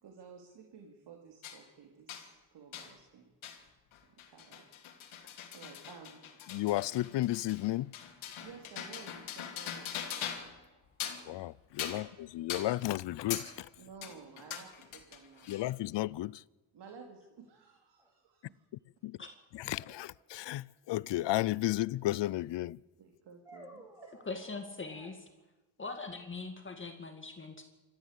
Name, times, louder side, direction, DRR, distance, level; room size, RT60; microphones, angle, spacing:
voice 1, 0.0-3.3 4.0-4.7 5.2-6.2 8.4-10.3 11.8-12.0 13.8-15.5 16.7-18.6 23.0-24.1, right 6 dB, 60° right, 3.2 m, -54 dB
sound 1, 1.4-1.6 2.1-2.3 2.7-2.9 3.4-3.6 3.9-10.6 10.9-11.3 11.8-12.1 12.5-12.7 13.3-13.5 14.0-15.7, left 9 dB, 80° left, 3.1 m, -42 dB
voice 2, 6.5-7.9 11.3-13.7 15.5-16.4 19.0-19.2 19.5-22.8, left 16 dB, 65° left, 0.6 m, -33 dB
sound 2, 18.0-18.1 19.7-20.7 23.5-25.2, right 1 dB, 5° right, 4.4 m, -54 dB
voice 3, 24.3-25.3 25.8-27.6, left 3 dB, 25° left, 2.1 m, -42 dB
26.0 x 14.0 x 8.2 m
cardioid pair, 125°, 47 cm